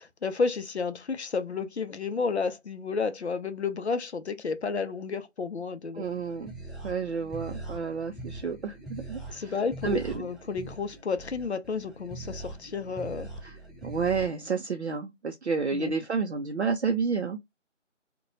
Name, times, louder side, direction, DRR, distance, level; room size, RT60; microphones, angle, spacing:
voice 1, 0.0-6.1 9.3-13.3 15.7-15.9, left 4 dB, 60° left, 0.5 m, -31 dB
voice 2, 5.9-6.5 6.8-9.5 9.8-10.1 13.4-13.6 13.8-17.4, right 5 dB, 60° right, 0.5 m, -30 dB
sound 1, 6.0-14.3, right 2 dB, ahead, 0.5 m, -42 dB
2.8 x 2.2 x 2.6 m
figure-of-eight pair, 175°, 38 cm